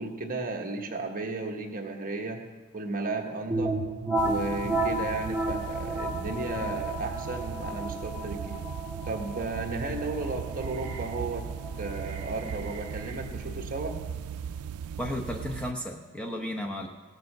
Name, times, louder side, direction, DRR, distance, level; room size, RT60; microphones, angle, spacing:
voice 1, 0.0-2.4 2.7-3.7 4.2-8.6 9.0-11.5 11.8-14.0, right 3 dB, 40° right, 1 dB, 1.3 m, -34 dB
sound 1, 3.5-13.1, right 1 dB, 10° right, 1.5 m, -33 dB
sound 2, 4.2-15.7, right 7 dB, 85° right, 0.3 m, -38 dB
sound 3, 9.4-14.7, right 2 dB, 55° right, 1.7 m, -46 dB
voice 2, 15.0-16.9, left 1 dB, 5° left, 1 dB, 0.8 m, -34 dB
17.0 x 6.8 x 6.6 m, 1.3 s
head